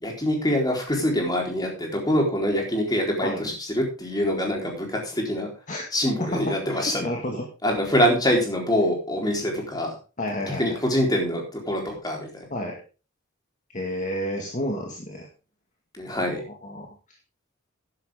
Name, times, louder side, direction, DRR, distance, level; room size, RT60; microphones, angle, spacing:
voice 1, 0.0-5.5 5.9-7.1 7.6-10.0 10.5-12.5 15.9-16.4, equal, 20° left, 0 dB, 4.1 m, -25 dB
voice 2, 6.2-6.6 7.0-7.5 10.2-10.8 12.5-12.8 13.7-15.3 16.4-16.9, left 1 dB, 40° left, 1 dB, 1.9 m, -30 dB
12.0 x 11.0 x 3.7 m, 0.34 s
head